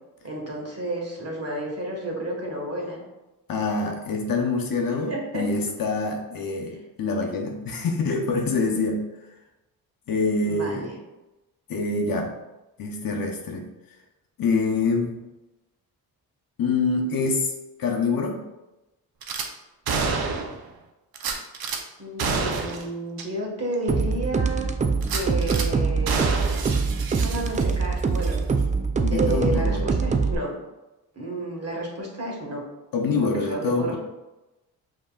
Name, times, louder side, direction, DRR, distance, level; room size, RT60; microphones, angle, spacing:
voice 1, 0.2-3.0 4.9-5.4 6.7-6.8 10.4-11.0 22.0-24.7 25.1-26.3 27.1-28.4 29.1-30.5 31.1-32.6 33.2-34.0, right 1 dB, 40° right, -2 dB, 1.5 m, -31 dB
voice 2, 3.5-9.0 10.1-10.9 11.7-12.3 12.8-13.7 14.4-15.3 16.6-17.5 17.8-18.4 29.0-29.9 32.9-34.0, left 3 dB, 60° left, 1 dB, 0.8 m, -25 dB
Gunshot gunfire / Glass, 19.2-19.5 19.9-20.6 21.2-21.8 22.2-22.9 23.2-23.3 23.7-23.8 25.0-25.7 26.1-27.9 28.2-28.4, right 4 dB, 65° right, 0.7 m, -28 dB
sound 1, 23.9-30.3, right 4 dB, 20° right, 0.3 m, -24 dB
5.3 x 2.9 x 2.3 m, 1.0 s
cardioid pair, 65°, 39 cm